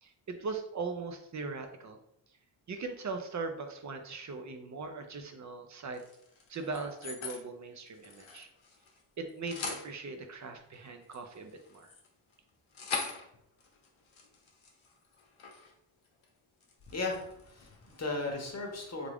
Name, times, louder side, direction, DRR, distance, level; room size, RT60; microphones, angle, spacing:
voice 1, 0.0-2.0 2.7-6.0 6.5-8.5 9.2-11.9, right 4 dB, 40° right, 6 dB, 0.5 m, -40 dB
sound 1, 5.9-7.4 7.8-9.0 9.3-9.9 10.7-15.7 16.0-16.3 16.6-18.1, left 5 dB, 70° left, 0.9 m, -43 dB
voice 2, 16.9-19.1, left 2 dB, 35° left, 1 dB, 0.8 m, -36 dB
3.4 x 2.4 x 3.4 m, 0.75 s
wide cardioid pair, 125°, 48 cm